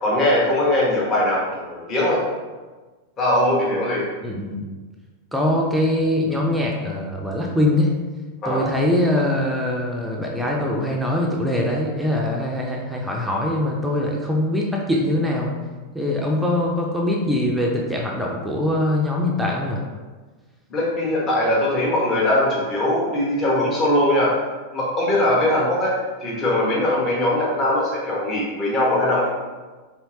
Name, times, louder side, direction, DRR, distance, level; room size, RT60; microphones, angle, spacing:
voice 1, 0.0-2.2 3.2-4.0 8.4-8.7 20.7-24.4 24.7-25.9 26.2-29.3, left 1 dB, 30° left, -5 dB, 1.1 m, -21 dB
voice 2, 4.2-4.7 5.3-7.9 8.5-15.5 15.9-19.8, left 1 dB, 5° right, -2 dB, 0.5 m, -22 dB
4.4 x 3.3 x 2.7 m, 1.3 s
figure-of-eight pair, 90°, 0 cm